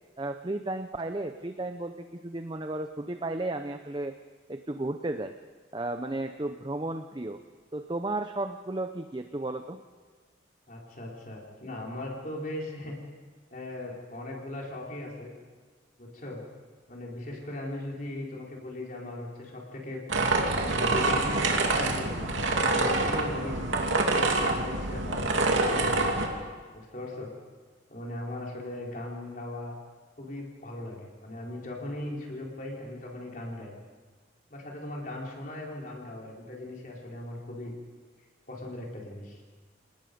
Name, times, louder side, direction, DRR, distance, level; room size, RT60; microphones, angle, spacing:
voice 1, 0.2-4.1 4.5-5.3 5.7-7.4 7.7-9.8, right 2 dB, 25° right, 7 dB, 0.6 m, -33 dB
voice 2, 10.7-13.0 13.5-15.3 16.0-16.4 16.9-20.0 20.6-23.8 24.3-26.1 26.7-27.3 27.9-29.7 30.2-33.8 34.5-37.7 38.5-39.4, left 1 dB, 45° left, -2 dB, 4.2 m, -39 dB
sound 1, 20.1-26.3, right 2 dB, 85° right, 2.7 m, -26 dB
28.5 x 19.0 x 5.3 m, 1.5 s
head